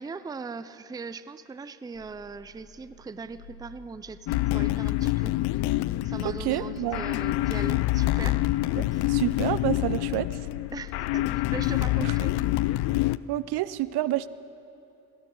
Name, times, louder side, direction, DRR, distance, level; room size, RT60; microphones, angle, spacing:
voice 1, 0.0-5.4 6.0-8.4 8.9-9.1 10.7-12.3, right 4 dB, 10° right, 14 dB, 0.5 m, -39 dB
sound 1, 1.9-12.9, left 3 dB, 85° left, 1.6 m, -55 dB
sound 2, 4.3-13.2, left 17 dB, 60° left, 0.5 m, -26 dB
voice 2, 6.2-7.0 8.8-10.4 12.0-12.1 13.3-14.3, right 15 dB, 65° right, 17 dB, 0.6 m, -29 dB
22.5 x 15.5 x 3.9 m, 2.8 s
supercardioid pair, 70°, 43 cm